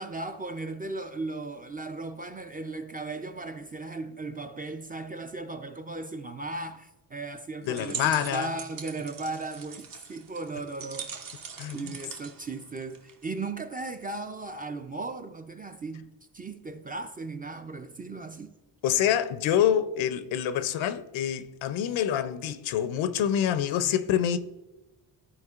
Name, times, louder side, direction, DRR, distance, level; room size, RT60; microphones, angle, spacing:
voice 1, 0.0-11.1 11.7-16.1 16.3-18.5, right 3 dB, 20° right, 0.3 m, -36 dB
voice 2, 7.6-8.5 11.6-12.0 18.8-24.4, left 10 dB, 80° left, 0.6 m, -26 dB
sound 1, 7.6-13.3, right 6 dB, 45° right, 0.8 m, -41 dB
11.0 x 4.3 x 2.4 m
cardioid pair, 90°, 46 cm